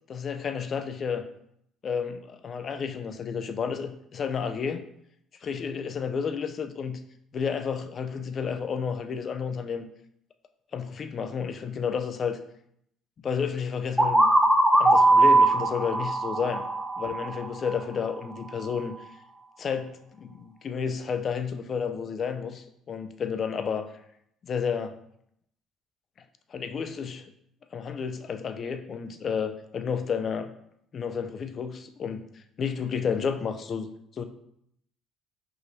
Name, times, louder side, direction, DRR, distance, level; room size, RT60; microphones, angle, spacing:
voice 1, 0.1-1.3 1.8-4.8 5.4-7.0 7.3-9.9 10.7-12.4 13.2-14.3 14.8-16.6 17.0-18.9 19.6-19.9 20.2-23.9 24.4-24.9 26.5-27.2 27.7-30.5 30.9-32.3 32.6-33.9 34.2-34.3, left 6 dB, 45° left, 8 dB, 0.4 m, -31 dB
sound 1, 14.0-17.7, right 2 dB, 10° right, 0.8 m, -21 dB
4.7 x 2.6 x 3.0 m, 0.73 s
supercardioid pair, 75°, 0 cm